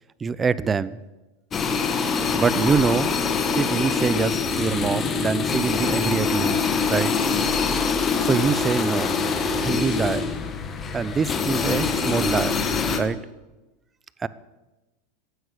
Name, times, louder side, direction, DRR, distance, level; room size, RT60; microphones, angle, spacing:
voice 1, 0.2-1.0 2.3-3.1 3.5-6.6 6.9-7.1 8.2-9.2 9.6-10.3 10.9-12.6 12.9-13.2 14.2-14.3, right 5 dB, 20° right, 18 dB, 0.6 m, -24 dB
sound 1, 1.5-13.0, left 5 dB, 25° left, 1.8 m, -24 dB
15.0 x 9.5 x 8.2 m, 1.1 s
supercardioid pair, 125°, 0 cm